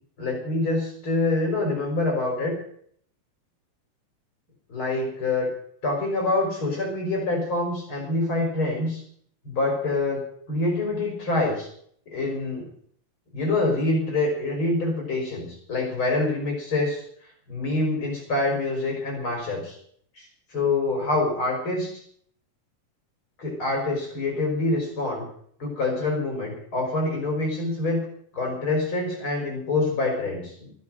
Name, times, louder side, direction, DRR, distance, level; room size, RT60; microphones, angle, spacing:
voice 1, 0.2-2.5 4.7-5.5 5.8-9.0 9.4-11.7 12.1-12.6 13.3-17.0 17.5-19.8 20.2-20.3 20.5-21.9 23.4-25.2 25.6-28.0 28.3-30.7, left 2 dB, 35° left, 1 dB, 6.1 m, -26 dB
15.0 x 10.5 x 7.8 m, 0.62 s
omnidirectional pair, 3.9 m